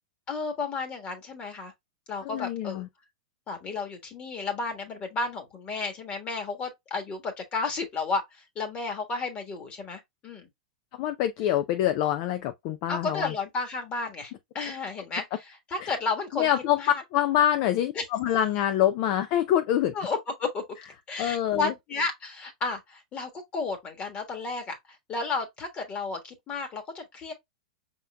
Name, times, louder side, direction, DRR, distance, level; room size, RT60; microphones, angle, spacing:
voice 1, 0.3-1.7 2.1-2.8 3.5-10.5 12.9-17.0 17.9-18.1 19.9-20.6 21.1-24.8 25.1-27.3, left 4 dB, 30° left, 1.5 m, -32 dB
voice 2, 2.2-2.9 11.0-13.3 15.8-15.9 16.3-16.8 17.1-19.9 21.2-21.7, left 11 dB, 45° left, 0.5 m, -25 dB
5.5 x 3.7 x 2.2 m
hypercardioid pair, 115°, 4 cm